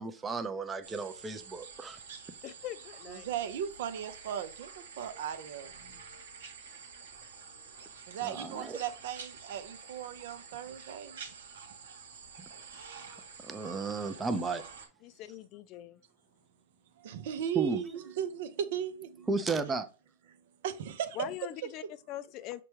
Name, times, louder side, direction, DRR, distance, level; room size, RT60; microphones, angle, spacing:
voice 1, 0.0-2.0 8.2-8.8 12.4-12.5 13.4-14.6 17.6-18.3 19.3-19.9, right 4 dB, 15° right, 0.5 m, -34 dB
sound 1, 0.8-14.9, right 5 dB, 85° right, 1.0 m, -48 dB
voice 2, 2.4-3.3 15.0-16.0 19.5-19.6 21.2-22.6, left 13 dB, 40° left, 0.3 m, -42 dB
voice 3, 3.1-5.7 8.1-11.2 17.0-19.3 20.6-21.2, right 9 dB, 70° right, 0.5 m, -37 dB
5.7 x 2.2 x 3.1 m
hypercardioid pair, 125°, 0 cm